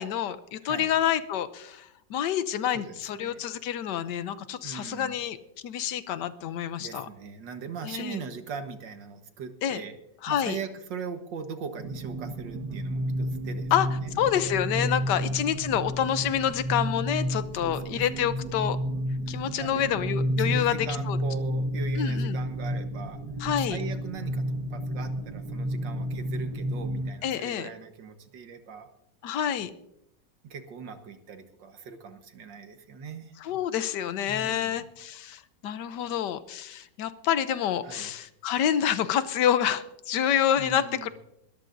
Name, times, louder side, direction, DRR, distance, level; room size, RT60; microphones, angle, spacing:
voice 1, 0.0-5.4 5.6-7.1 7.8-8.2 9.6-9.8 10.2-10.6 13.7-13.9 14.2-18.8 19.3-21.2 22.0-22.4 23.4-23.8 27.2-27.7 29.2-29.7 33.4-41.1, left 10 dB, 75° left, 13 dB, 1.3 m, -28 dB
voice 2, 0.6-0.9 2.7-3.4 4.6-5.2 6.8-9.9 10.3-13.7 14.0-14.1 15.1-15.4 17.6-18.6 19.3-19.9 20.3-23.2 23.5-28.9 30.4-33.4 34.3-34.9 37.8-38.1 40.6-41.1, right 6 dB, 80° right, 7 dB, 2.0 m, -40 dB
sound 1, 11.8-27.1, equal, 65° right, 1.9 m, -31 dB
22.5 x 13.5 x 2.6 m, 0.80 s
omnidirectional pair, 1.9 m